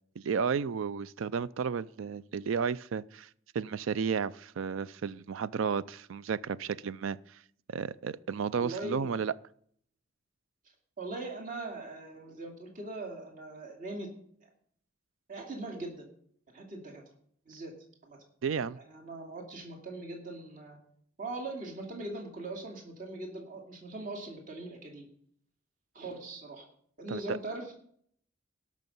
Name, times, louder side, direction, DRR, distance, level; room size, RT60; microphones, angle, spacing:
voice 1, 0.2-3.3 3.5-7.4 7.7-9.3 18.4-18.8 27.1-27.4, right 6 dB, 75° right, 18 dB, 0.4 m, -33 dB
voice 2, 8.5-9.1 11.0-14.1 15.3-16.1 16.5-17.0 17.5-17.7 18.0-18.2 18.8-20.8 21.2-25.1 25.9-26.6 27.0-27.7, right 2 dB, 45° right, 0 dB, 2.4 m, -40 dB
18.0 x 6.3 x 5.4 m, 0.63 s
head